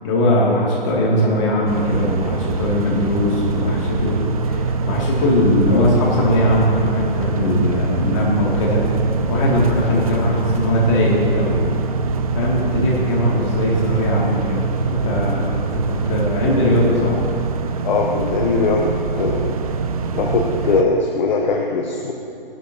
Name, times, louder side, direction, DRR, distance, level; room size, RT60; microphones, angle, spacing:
voice 1, 0.0-4.2 4.5-11.7 12.3-17.2, left 1 dB, 30° left, -4 dB, 2.6 m, -20 dB
sound 1, 1.7-20.8, right 4 dB, 40° right, 0.6 m, -23 dB
voice 2, 17.8-18.9 19.2-19.6 20.1-22.1, left 3 dB, 50° left, 1 dB, 1.1 m, -20 dB
15.0 x 12.0 x 2.9 m, 2.6 s
hypercardioid pair, 145°, 29 cm